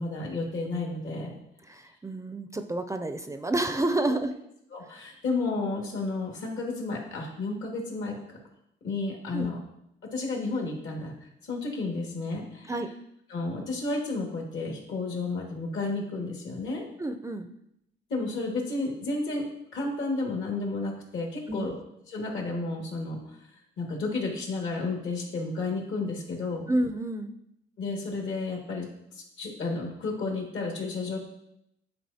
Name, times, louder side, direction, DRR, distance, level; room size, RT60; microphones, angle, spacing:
voice 1, 0.0-1.3 4.7-8.4 8.8-9.6 10.1-11.1 11.5-12.7 13.3-16.8 18.1-19.4 19.7-21.8 22.1-23.2 23.8-26.8 27.8-28.9 29.2-31.2, left 3 dB, 70° left, 0 dB, 1.9 m, -32 dB
voice 2, 1.6-4.3 9.3-9.5 12.7-12.9 17.0-17.5 21.5-21.7 26.7-27.4, right 2 dB, 15° right, 8 dB, 0.4 m, -29 dB
9.4 x 4.2 x 2.8 m, 0.79 s
cardioid pair, 90°, 20 cm